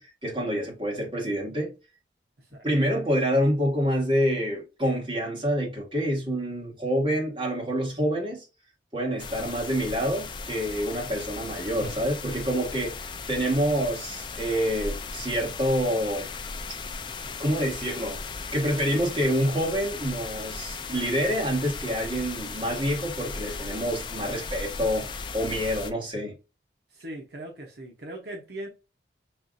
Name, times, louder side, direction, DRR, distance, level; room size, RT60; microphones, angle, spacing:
voice 1, 0.0-1.7 2.6-8.4 8.9-16.3 17.4-18.2 18.5-26.4, equal, 25° right, 1.5 m, -27 dB
sound 1, 9.2-25.9, left 4 dB, 25° left, 0.3 m, -37 dB
voice 2, 26.9-28.7, right 1 dB, 60° right, 0.9 m, -39 dB
5.6 x 2.4 x 2.6 m
head